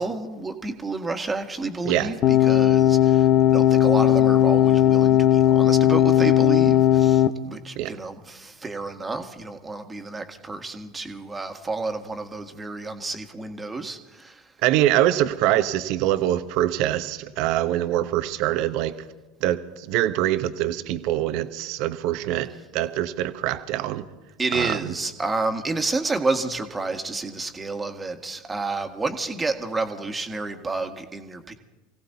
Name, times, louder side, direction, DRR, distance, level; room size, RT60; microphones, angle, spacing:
voice 1, 0.0-14.4 24.4-31.5, right 3 dB, 15° right, 5 dB, 1.7 m, -30 dB
sound 1, 2.2-7.3, left 11 dB, 45° left, 0.9 m, -17 dB
voice 2, 14.6-19.0 19.4-24.0 24.5-24.9, right 13 dB, 55° right, 11 dB, 0.9 m, -24 dB
28.0 x 17.0 x 2.8 m, 1.1 s
hypercardioid pair, 80°, 0 cm